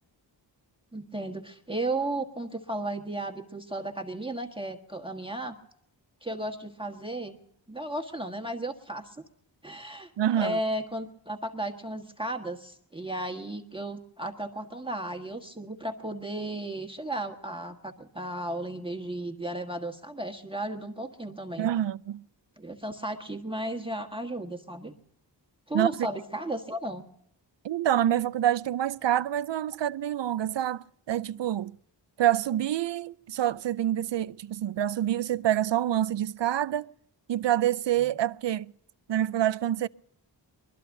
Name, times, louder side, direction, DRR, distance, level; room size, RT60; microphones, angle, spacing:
voice 1, 0.9-5.5 6.2-7.4 7.7-9.2 9.6-21.7 22.6-25.0 25.7-27.0, right 1 dB, 10° right, 1.4 m, -34 dB
voice 2, 10.2-10.6 21.6-22.2 25.7-26.1 27.6-31.7 32.2-36.9 37.3-38.7 39.1-39.9, right 11 dB, 75° right, 0.5 m, -27 dB
23.0 x 21.5 x 2.7 m
wide cardioid pair, 75°, 44 cm